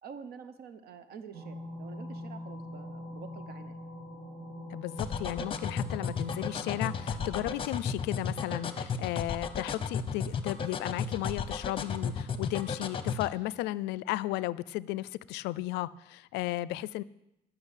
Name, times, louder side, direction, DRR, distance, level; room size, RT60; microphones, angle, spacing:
voice 1, 0.0-3.8, right 6 dB, 65° right, 11 dB, 0.8 m, -47 dB
sound 1, 1.3-7.6, left 1 dB, 45° right, 3.7 m, -43 dB
voice 2, 4.7-17.0, left 16 dB, 85° left, 20 dB, 0.4 m, -34 dB
sound 2, 5.0-13.3, left 6 dB, 30° left, 0.9 m, -33 dB
10.5 x 5.9 x 8.2 m, 0.88 s
cardioid pair, 110°, 17 cm